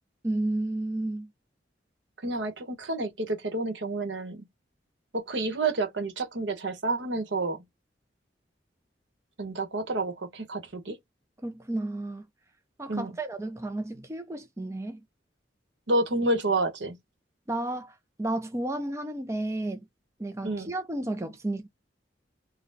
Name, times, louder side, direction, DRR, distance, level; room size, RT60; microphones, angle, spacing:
voice 1, 0.2-1.3 11.4-12.3 12.8-15.0 17.5-19.8 20.2-21.7, right 1 dB, 15° right, 0.5 m, -32 dB
voice 2, 2.2-4.5 5.1-7.6 9.4-11.0 12.9-13.1 15.9-17.0 20.4-20.7, right 2 dB, 85° right, 1.1 m, -29 dB
4.1 x 2.2 x 3.9 m
head